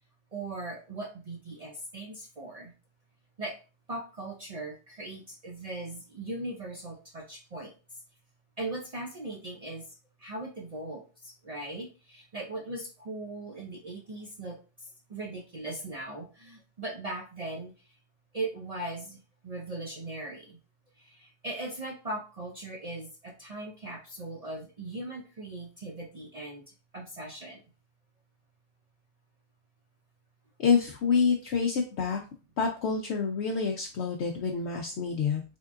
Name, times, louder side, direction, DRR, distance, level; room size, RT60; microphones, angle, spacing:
voice 1, 0.3-2.7 3.4-3.6 3.9-7.7 8.6-9.9 10.2-14.6 15.1-17.7 18.3-20.6 21.0-26.6 26.9-27.6, right 2 dB, 60° right, 0 dB, 0.4 m, -39 dB
voice 2, 30.6-32.2 32.6-35.4, left 5 dB, 65° left, 1 dB, 0.8 m, -27 dB
3.6 x 3.6 x 2.4 m, 0.33 s
omnidirectional pair, 1.4 m